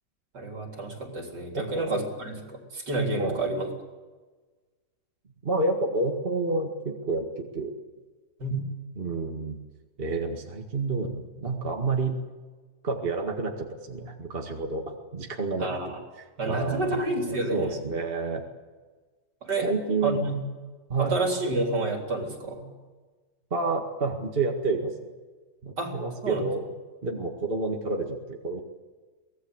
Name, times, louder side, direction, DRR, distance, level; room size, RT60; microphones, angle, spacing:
voice 1, 0.3-3.7 8.4-8.6 15.6-16.0 16.4-17.8 19.4-19.7 20.0-20.4 21.0-22.7 25.8-26.4, right 2 dB, 60° right, 2 dB, 4.3 m, -29 dB
voice 2, 1.5-1.9 3.2-3.4 5.4-7.7 9.0-9.6 10.0-12.2 12.8-14.8 15.1-15.9 16.4-18.4 19.6-20.2 20.9-21.2 23.5-25.1 25.6-26.6 27.0-28.6, right 3 dB, 30° right, 2 dB, 2.1 m, -29 dB
24.0 x 18.5 x 8.1 m, 1.4 s
omnidirectional pair, 2.1 m